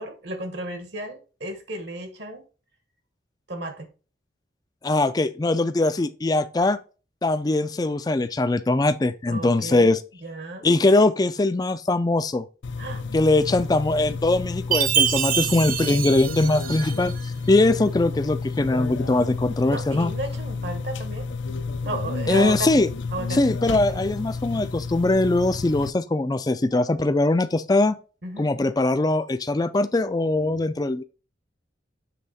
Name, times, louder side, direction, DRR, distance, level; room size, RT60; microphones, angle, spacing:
voice 1, 0.0-2.4 3.5-3.9 9.3-9.9 10.2-10.7 12.8-13.0 19.7-21.3 21.8-23.4 23.9-24.0 28.2-28.5, right 2 dB, 65° right, 1.3 m, -33 dB
voice 2, 4.8-6.8 7.2-10.0 10.6-12.4 13.1-17.1 17.5-20.1 22.3-22.9 23.3-28.0 28.4-31.0, left 2 dB, 20° left, 0.4 m, -21 dB
sound 1, 12.6-25.9, left 4 dB, 80° left, 0.5 m, -31 dB
Chime, 14.7-17.2, right 9 dB, 45° right, 0.5 m, -25 dB
7.6 x 3.5 x 4.1 m
head